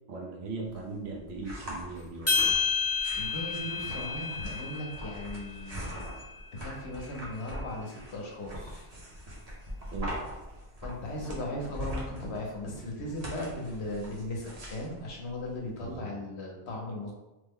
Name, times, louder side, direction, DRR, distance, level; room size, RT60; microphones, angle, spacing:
voice 1, 0.1-2.6 9.9-10.2 15.8-16.1, right 3 dB, 70° right, -1 dB, 0.9 m, -39 dB
sound 1, 0.6-16.0, equal, 35° right, 0.9 m, -42 dB
sound 2, 2.3-6.7, left 4 dB, 15° left, 0.7 m, -31 dB
voice 2, 3.1-6.1 6.6-8.9 10.8-17.1, left 1 dB, 70° left, 0 dB, 1.0 m, -37 dB
3.2 x 2.1 x 3.5 m, 1.0 s
omnidirectional pair, 1.2 m